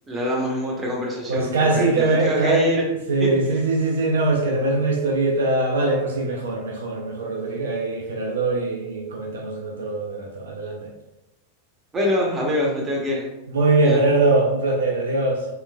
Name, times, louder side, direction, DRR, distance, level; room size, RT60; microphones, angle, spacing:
voice 1, 0.1-2.8 3.2-3.3 11.9-13.3 13.8-14.0, left 1 dB, 15° right, -2 dB, 0.9 m, -24 dB
voice 2, 1.3-2.7 3.1-10.9 13.5-15.5, right 3 dB, 65° right, 0 dB, 0.4 m, -22 dB
3.1 x 3.0 x 2.2 m, 0.97 s
figure-of-eight pair, 90°, 0 cm